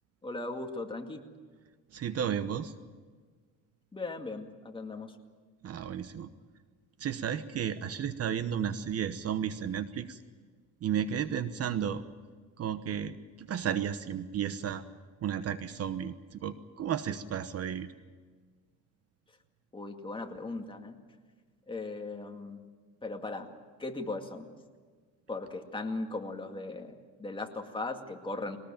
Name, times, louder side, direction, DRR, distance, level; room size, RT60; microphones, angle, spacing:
voice 1, 0.2-1.2 3.9-5.2 19.7-21.0 21.7-22.6 23.0-23.5 23.8-24.5 25.3-28.6, left 2 dB, 15° left, 4 dB, 2.1 m, -38 dB
voice 2, 1.9-2.7 5.6-6.3 7.0-10.2 10.8-12.0 12.6-14.8 15.2-17.9, right 8 dB, 45° right, 12 dB, 1.1 m, -33 dB
22.0 x 19.0 x 8.8 m, 1.5 s
cardioid pair, 125°, 35 cm